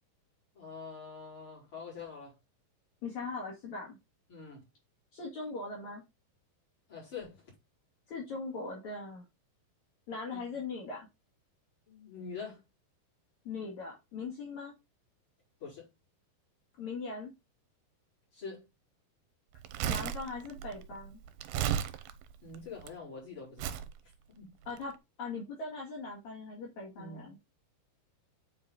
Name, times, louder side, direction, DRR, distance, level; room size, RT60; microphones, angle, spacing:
voice 1, 0.5-2.3 4.3-4.6 6.9-7.5 10.3-10.4 11.9-12.6 15.6-15.9 18.3-18.6 22.4-23.8 24.3-24.5 26.9-27.3, left 5 dB, 30° left, 4.8 m, -45 dB
voice 2, 3.0-4.0 5.1-6.0 8.1-9.2 10.1-11.1 13.4-14.7 16.8-17.3 19.9-21.2 24.7-24.9 25.2-27.4, left 3 dB, 55° left, 2.8 m, -40 dB
Crumpling crinkling, 19.6-22.9 23.6-23.9 24.7-24.8, right 9 dB, 80° right, 2.3 m, -35 dB
8.0 x 5.0 x 3.8 m
omnidirectional pair, 4.5 m